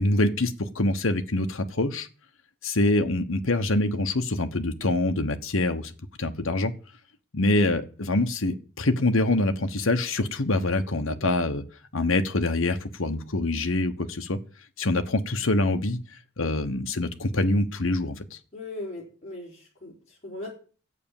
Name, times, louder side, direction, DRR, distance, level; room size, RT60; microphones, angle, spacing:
voice 1, 0.0-2.1 2.6-5.9 6.2-6.7 7.3-11.6 11.9-14.4 14.8-16.0 16.4-18.2, left 2 dB, 75° left, 6 dB, 1.1 m, -25 dB
voice 2, 18.5-20.5, left 2 dB, 30° left, -4 dB, 4.0 m, -39 dB
11.5 x 8.4 x 7.2 m, 0.40 s
head